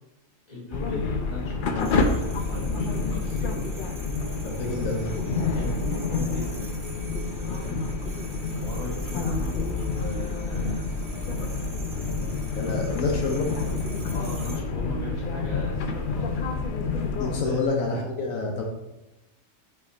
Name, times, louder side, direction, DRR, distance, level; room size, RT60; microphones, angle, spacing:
voice 1, 0.5-3.7 5.5-6.8 7.2-7.9 8.1-11.0 14.1-16.5 17.3-17.6, equal, 30° left, -5 dB, 2.2 m, -39 dB
sound 1, 0.7-17.4, left 4 dB, 55° left, 0.6 m, -28 dB
sound 2, 1.8-14.6, right 3 dB, 45° right, 1.1 m, -45 dB
voice 2, 4.4-5.1 12.3-13.6 17.2-18.6, left 3 dB, 80° left, 0 dB, 1.3 m, -28 dB
5.4 x 4.9 x 4.0 m, 0.98 s
omnidirectional pair, 1.4 m